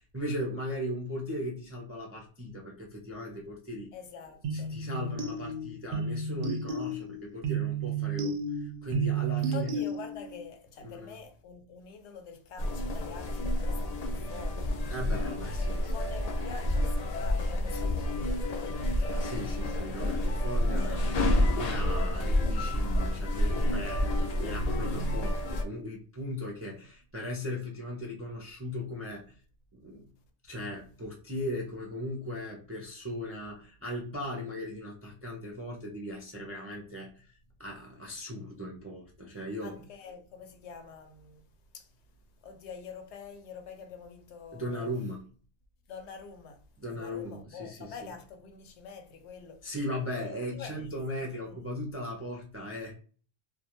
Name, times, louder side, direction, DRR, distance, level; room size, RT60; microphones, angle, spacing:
voice 1, 0.1-3.9 4.5-9.8 10.8-11.2 14.9-16.0 17.7-17.9 19.2-21.0 21.5-29.4 29.7-30.1 30.4-39.8 44.5-45.3 46.8-48.0 49.6-53.0, left 1 dB, 25° right, 0.3 m, -38 dB
voice 2, 3.9-4.8 9.4-14.7 15.8-19.0 20.7-21.1 39.6-41.5 41.7-44.9 45.9-49.7 50.1-50.9 51.2-51.7, left 6 dB, 80° left, 0.9 m, -46 dB
sound 1, 4.4-10.4, right 4 dB, 60° right, 0.6 m, -32 dB
sound 2, 12.6-25.6, left 1 dB, 55° left, 0.4 m, -29 dB
2.3 x 2.2 x 2.8 m
omnidirectional pair, 1.1 m